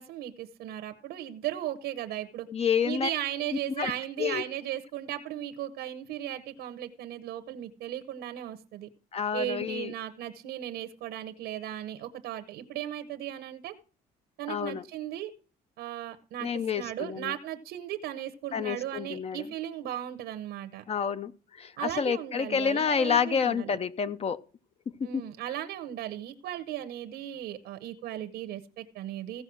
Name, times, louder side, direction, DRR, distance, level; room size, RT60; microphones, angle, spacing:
voice 1, 0.0-2.5 2.8-8.9 9.3-13.7 14.4-15.3 15.8-20.8 21.8-23.8 25.0-29.4, right 12 dB, 85° right, 0.9 m, -36 dB
voice 2, 2.5-3.1 3.8-3.9 4.2-4.4 9.1-9.9 14.5-14.8 16.4-17.3 18.5-19.5 20.9-24.4 25.0-25.3, left 7 dB, 35° left, 0.6 m, -29 dB
16.0 x 5.4 x 6.2 m
cardioid pair, 110°, 17 cm